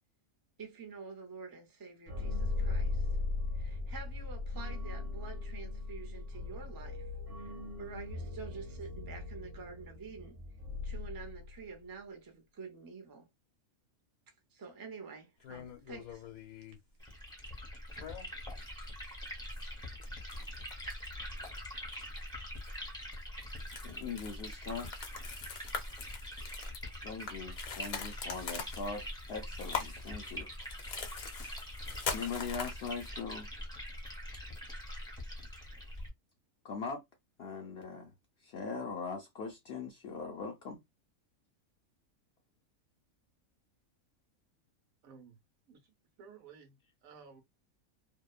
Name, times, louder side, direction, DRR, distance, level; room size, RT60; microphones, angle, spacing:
voice 1, 0.6-3.1 3.5-7.1 7.4-10.4 10.8-13.3 14.5-16.2, right 5 dB, 30° right, 0.4 m, -48 dB
sound 1, 2.1-11.7, left 3 dB, 45° right, 1.1 m, -38 dB
sound 2, 15.4-16.8 17.9-18.7 19.0-19.1 19.5-21.0 21.4-21.6 21.9-22.2 22.6-22.7 23.1-33.1, left 6 dB, 90° left, 1.2 m, -43 dB
Liquid, 17.0-36.1, equal, 5° left, 0.7 m, -44 dB
voice 2, 23.8-24.9 27.0-30.5 32.1-33.5 36.6-37.0 37.4-38.1 38.4-40.8, left 5 dB, 65° left, 0.6 m, -41 dB
voice 3, 45.0-45.4 45.7-47.4, right 6 dB, 75° right, 1.2 m, -55 dB
2.8 x 2.1 x 2.3 m
omnidirectional pair, 1.5 m